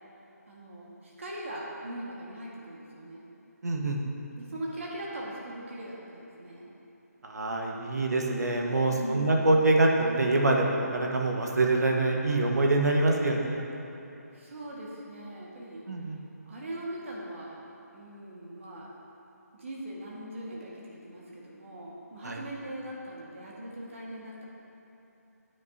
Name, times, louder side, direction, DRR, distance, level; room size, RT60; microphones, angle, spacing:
voice 1, 0.5-3.2 4.4-6.7 8.9-9.4 14.3-15.8 16.5-17.6 17.9-18.9 19.5-24.5, right 1 dB, 50° right, -4 dB, 1.7 m, -40 dB
voice 2, 3.6-4.0 7.2-13.6 15.9-16.2 22.2-22.4, right 2 dB, 75° right, 0 dB, 1.4 m, -25 dB
13.5 x 9.2 x 2.8 m, 3.0 s
figure-of-eight pair, 165°, 9 cm